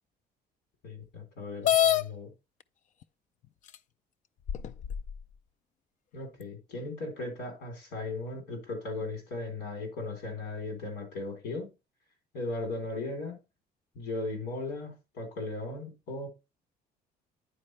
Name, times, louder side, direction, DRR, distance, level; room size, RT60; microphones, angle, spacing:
voice 1, 0.8-2.3 6.1-11.7 12.3-13.4 14.0-16.3, left 2 dB, 90° left, 3.9 m, -37 dB
sound 1, 1.6-2.0 3.0-3.1 3.7-3.8 4.5-5.2, left 11 dB, 50° left, 0.4 m, -25 dB
9.8 x 4.3 x 3.2 m
cardioid pair, 110°, 17 cm